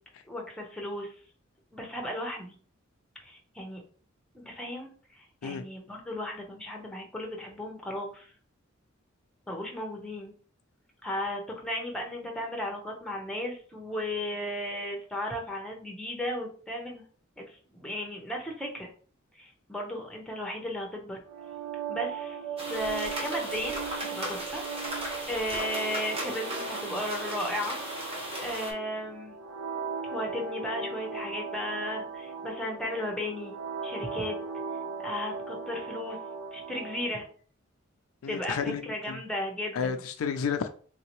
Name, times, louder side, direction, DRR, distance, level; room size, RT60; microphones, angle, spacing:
voice 1, 0.3-1.1 1.7-2.6 3.2-3.8 4.3-8.3 9.5-10.3 11.0-17.0 17.4-18.9 19.4-21.2 21.9-24.6 25.3-27.8 28.4-29.3 30.0-33.5 33.8-34.4 35.0-36.2 36.5-37.3 38.3-40.0, left 1 dB, 5° left, 0.7 m, -35 dB
sound 1, 21.3-37.2, right 5 dB, 85° right, 0.6 m, -38 dB
sound 2, 22.6-28.7, right 1 dB, 30° right, 0.9 m, -36 dB
voice 2, 38.2-39.2 39.7-40.7, left 6 dB, 80° left, 0.4 m, -31 dB
3.5 x 2.8 x 3.0 m
head